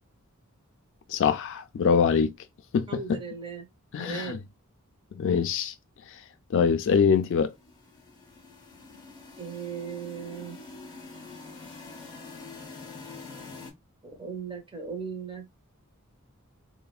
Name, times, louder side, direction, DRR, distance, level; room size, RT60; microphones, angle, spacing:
voice 1, 1.1-2.3 2.7-3.2 3.9-4.4 5.1-5.7 6.5-7.5, left 6 dB, 60° left, 0.4 m, -24 dB
voice 2, 2.9-3.7 4.0-4.5 9.4-10.6 14.0-15.5, right 6 dB, 25° right, 0.7 m, -37 dB
sound 1, 7.3-13.7, left 3 dB, 20° left, 0.7 m, -45 dB
3.2 x 2.1 x 2.3 m
head